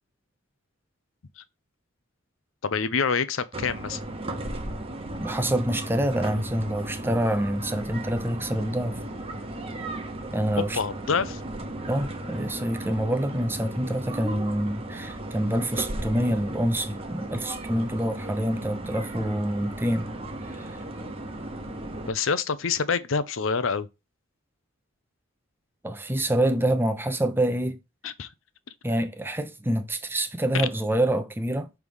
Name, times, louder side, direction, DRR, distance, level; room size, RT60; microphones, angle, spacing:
voice 1, 2.6-4.0 10.6-11.4 22.1-23.9 28.0-28.3, left 5 dB, 75° left, 0.7 m, -26 dB
sound 1, 3.5-22.1, right 1 dB, 30° right, 1.0 m, -36 dB
voice 2, 5.2-9.0 10.3-10.8 11.9-20.1 20.6-20.8 25.8-27.8 28.8-31.7, right 1 dB, 10° right, 0.7 m, -26 dB
6.3 x 3.5 x 5.3 m
head